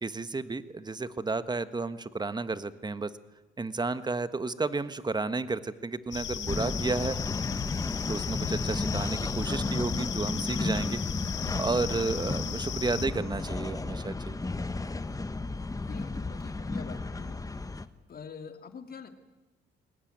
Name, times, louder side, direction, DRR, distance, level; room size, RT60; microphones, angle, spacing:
voice 1, 0.0-3.1 3.6-7.2 8.1-11.0 11.6-14.4, right 3 dB, 20° right, 13 dB, 1.4 m, -32 dB
sound 1, 6.1-13.1, left 9 dB, 65° left, 1.6 m, -36 dB
sound 2, 6.5-17.9, left 3 dB, 15° left, 1.3 m, -33 dB
voice 2, 15.8-17.4 18.1-19.1, left 6 dB, 50° left, 7 dB, 2.9 m, -45 dB
22.5 x 19.5 x 9.5 m, 1.0 s
cardioid pair, 90°, 20 cm